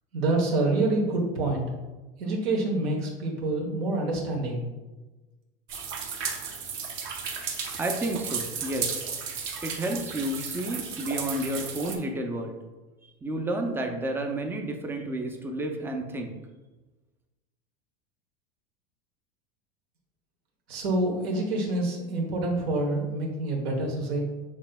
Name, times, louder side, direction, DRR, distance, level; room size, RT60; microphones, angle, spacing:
voice 1, 0.1-1.7 2.2-4.7 20.7-24.2, right 2 dB, 75° right, -1 dB, 1.1 m, -27 dB
sound 1, 5.7-12.0, right 6 dB, 40° right, 0.7 m, -34 dB
voice 2, 7.8-9.1 9.6-12.6 13.2-16.3, right 1 dB, 5° right, 3 dB, 0.4 m, -31 dB
6.2 x 3.3 x 2.2 m, 1.2 s
supercardioid pair, 115°, 31 cm